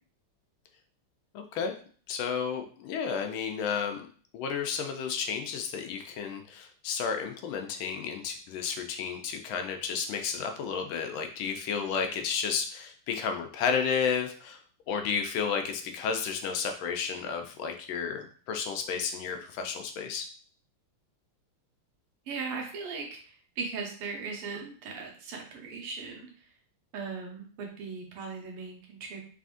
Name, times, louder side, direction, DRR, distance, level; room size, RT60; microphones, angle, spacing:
voice 1, 1.3-1.7 2.1-4.1 4.3-14.6 14.9-20.3, left 6 dB, 75° left, 5 dB, 1.3 m, -32 dB
voice 2, 22.3-23.1 23.6-26.3 26.9-29.2, right 4 dB, 90° right, 1 dB, 1.9 m, -38 dB
4.1 x 3.6 x 2.5 m, 0.43 s
omnidirectional pair, 2.4 m